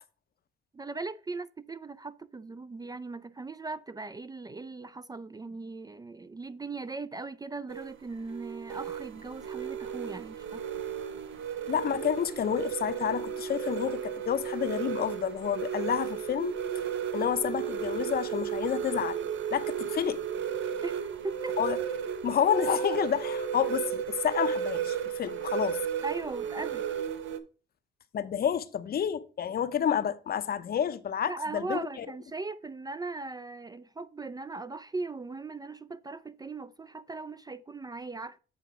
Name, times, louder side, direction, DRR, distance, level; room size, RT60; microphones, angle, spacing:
voice 1, 0.7-10.6 20.8-21.6 26.0-26.8 31.3-38.4, right 3 dB, 20° right, 0.4 m, -39 dB
sound 1, 7.7-27.4, right 8 dB, 75° right, 0.9 m, -34 dB
voice 2, 11.7-16.6 17.1-19.2 19.5-20.2 21.6-21.8 22.2-25.8 28.1-32.1, left 8 dB, 50° left, 0.7 m, -29 dB
8.4 x 3.4 x 6.0 m
cardioid pair, 90°, 20 cm